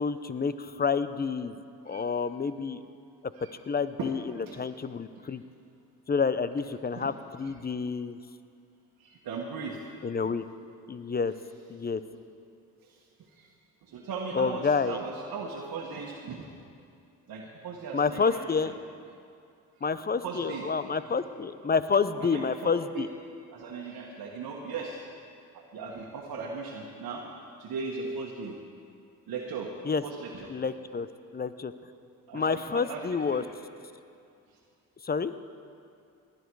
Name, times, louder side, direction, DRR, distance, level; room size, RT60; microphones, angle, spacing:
voice 1, 0.0-1.6 1.9-2.8 3.7-4.2 4.5-5.4 6.1-8.2 10.0-10.4 10.9-11.3 11.7-12.0 14.3-15.0 17.9-18.7 19.8-23.1 29.9-30.0 30.5-31.1 31.3-31.7 32.3-33.4 35.0-35.3, left 5 dB, 25° left, 13 dB, 0.7 m, -28 dB
voice 2, 6.9-7.6 9.0-9.8 12.1-12.2 12.8-13.5 13.8-16.6 17.3-18.7 20.2-20.7 22.1-22.4 22.9-23.1 23.5-25.0 25.5-27.3 27.6-28.6 29.3-29.7 30.0-30.5 32.3-33.5 34.5-34.6, right 4 dB, 70° right, -2 dB, 1.5 m, -38 dB
19.5 x 10.5 x 4.7 m, 2.4 s
supercardioid pair, 60°, 36 cm